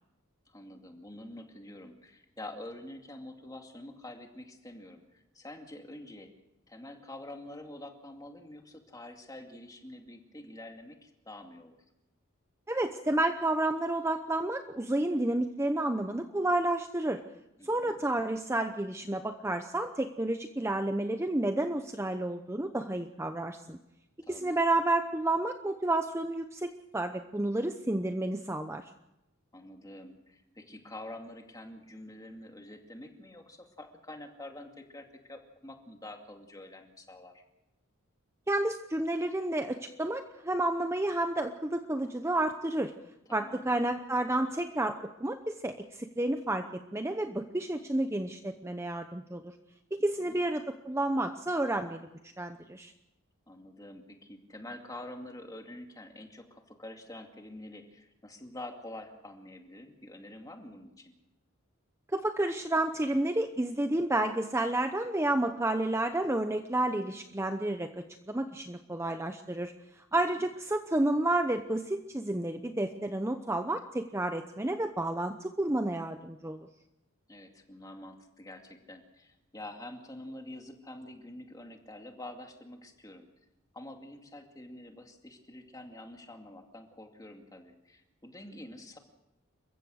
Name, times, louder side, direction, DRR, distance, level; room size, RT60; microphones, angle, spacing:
voice 1, 0.5-6.3 6.7-11.8 17.6-18.0 24.2-24.6 29.5-37.4 43.3-43.7 50.0-50.4 53.5-61.1 70.1-70.5 77.3-83.3 83.7-89.0, left 1 dB, 15° left, 3 dB, 2.3 m, -47 dB
voice 2, 12.7-17.2 17.7-23.8 24.3-28.8 38.5-42.9 43.3-45.8 46.2-46.6 46.9-49.5 50.0-52.1 52.4-52.9 62.1-67.9 68.3-69.7 70.1-76.7, right 1 dB, 15° right, 7 dB, 0.8 m, -30 dB
28.5 x 15.5 x 6.4 m, 0.90 s
head